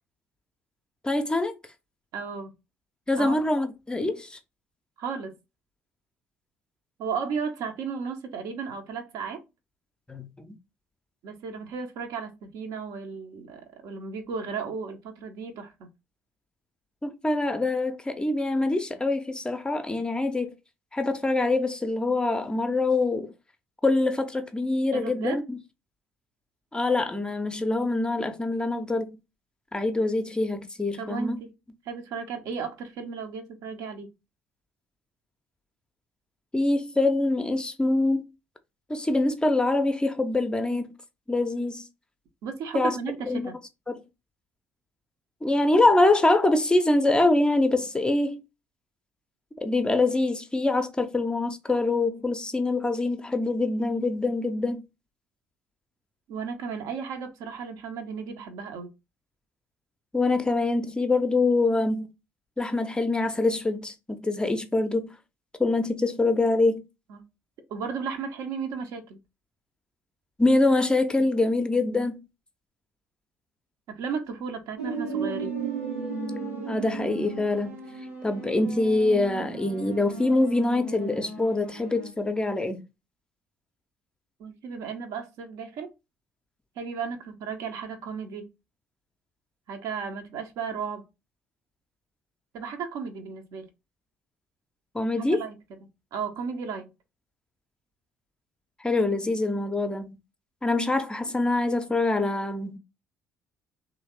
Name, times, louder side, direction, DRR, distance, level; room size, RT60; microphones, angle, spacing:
voice 1, 1.0-1.5 3.1-4.4 10.1-10.6 17.0-20.5 20.9-23.3 23.8-25.6 26.7-29.2 29.7-31.4 36.5-38.3 38.9-40.9 41.3-41.9 42.7-43.0 43.2-43.5 43.9-44.0 45.4-48.4 49.6-54.8 60.1-62.1 62.6-65.1 65.6-66.8 70.4-72.2 76.6-77.8 78.2-82.8 94.9-95.5 98.8-100.2 100.6-102.8, left 2 dB, 10° left, 0.5 m, -24 dB
voice 2, 2.1-2.5 3.2-3.4 5.0-5.3 7.0-9.4 11.2-15.9 24.9-25.4 31.0-31.5 31.9-34.1 42.4-43.2 43.4-43.5 56.3-58.9 67.1-67.2 67.7-69.2 71.7-71.9 73.9-75.6 84.4-85.9 86.8-88.5 89.7-91.0 92.5-93.7 95.3-95.6 96.1-96.9, right 5 dB, 55° right, 0.6 m, -34 dB
sound 1, 74.8-82.1, right 4 dB, 80° right, 0.9 m, -35 dB
3.1 x 2.6 x 2.9 m
figure-of-eight pair, 50°, 7 cm